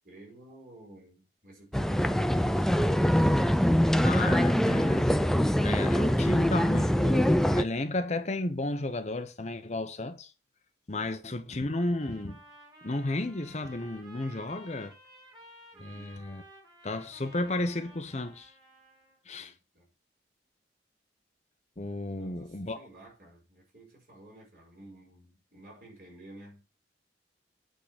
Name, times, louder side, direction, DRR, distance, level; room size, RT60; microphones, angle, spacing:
voice 1, 0.0-3.1 15.7-16.1 19.3-19.9 22.1-26.6, right 1 dB, 50° right, 4.8 m, -52 dB
sound 1, 1.7-7.6, equal, ahead, 0.3 m, -24 dB
voice 2, 4.0-5.3 5.6-10.3 10.9-12.4 12.8-14.9 15.8-16.4 16.8-18.5 19.3-19.5 21.8-22.8, left 2 dB, 40° left, 0.8 m, -33 dB
Trumpet, 11.7-19.2, right 1 dB, 25° right, 3.3 m, -54 dB
8.7 x 3.8 x 6.6 m
head